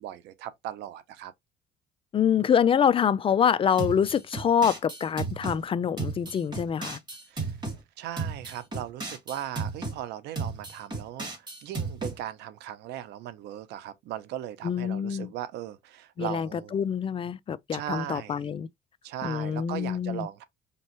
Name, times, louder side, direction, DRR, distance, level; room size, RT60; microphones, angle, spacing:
voice 1, 0.0-1.3 2.3-2.5 7.3-7.5 8.0-16.8 17.7-18.5 19.0-20.4, right 11 dB, 80° right, 0.7 m, -38 dB
voice 2, 2.1-7.0 14.6-15.3 16.2-18.7 19.2-20.3, left 8 dB, 35° left, 0.4 m, -25 dB
sound 1, 3.8-5.6 6.0-7.8 8.2-10.0 10.4-12.2, right 4 dB, 25° right, 2.7 m, -34 dB
5.2 x 3.0 x 2.9 m
cardioid pair, 110°, 17 cm